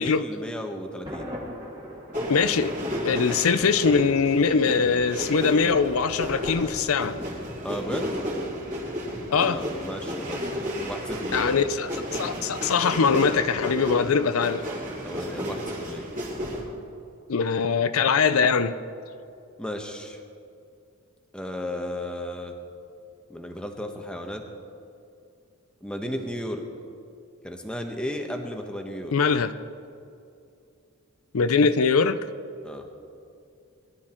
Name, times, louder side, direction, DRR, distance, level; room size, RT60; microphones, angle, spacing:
voice 1, 0.0-1.3 7.6-8.1 9.5-11.6 15.0-16.1 19.6-20.2 21.3-22.6 23.3-24.4 25.8-26.6 27.4-29.1 32.6-32.9, equal, 5° left, 1.2 m, -34 dB
Thunder, 1.0-4.0, equal, 20° right, 2.6 m, -40 dB
sound 1, 2.1-16.6, equal, 35° right, 4.0 m, -32 dB
voice 2, 2.3-2.7 3.0-7.1 9.3-9.6 11.3-14.6 17.3-18.7 29.1-29.5 31.3-32.2, left 5 dB, 75° left, 0.5 m, -22 dB
21.5 x 12.0 x 4.4 m
head